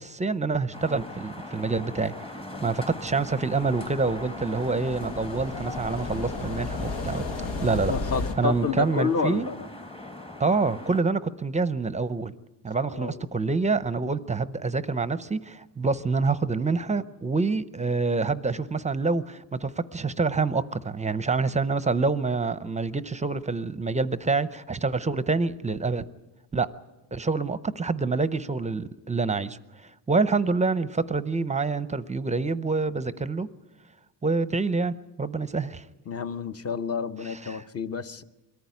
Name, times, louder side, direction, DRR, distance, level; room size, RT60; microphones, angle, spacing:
voice 1, 0.0-2.1 2.6-7.2 7.6-7.9 8.4-9.5 10.4-12.3 12.6-26.0 26.5-26.7 27.1-29.6 30.1-33.5 34.2-35.8 37.2-37.6, right 4 dB, 15° right, 14 dB, 0.6 m, -26 dB
sound 1, 0.7-11.0, left 1 dB, 15° left, 1.1 m, -40 dB
sound 2, 3.2-8.4, left 3 dB, 85° left, 2.0 m, -34 dB
voice 2, 7.7-9.7 12.9-13.3 36.1-38.2, left 5 dB, 35° left, 11 dB, 0.9 m, -29 dB
22.5 x 14.5 x 9.5 m, 1.1 s
cardioid pair, 115°, 42 cm